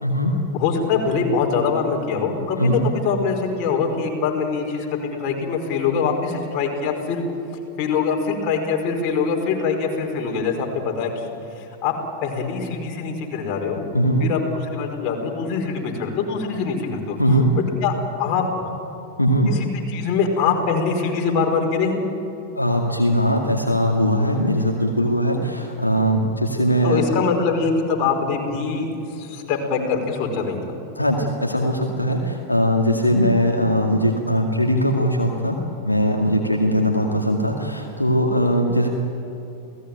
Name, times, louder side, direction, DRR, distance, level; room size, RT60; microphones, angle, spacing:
voice 1, 0.0-0.3 2.6-2.8 13.9-14.2 17.2-17.5 19.2-19.5 22.6-27.0 31.0-35.6 35.8-38.9, equal, 85° left, 1 dB, 2.2 m, -20 dB
voice 2, 0.5-7.2 7.8-11.3 11.5-11.9 12.2-13.8 14.2-17.2 17.8-18.5 19.5-22.0 26.8-30.8, left 5 dB, 40° left, 1 dB, 5.1 m, -23 dB
29.5 x 18.0 x 9.1 m, 2.9 s
figure-of-eight pair, 90°, 0 cm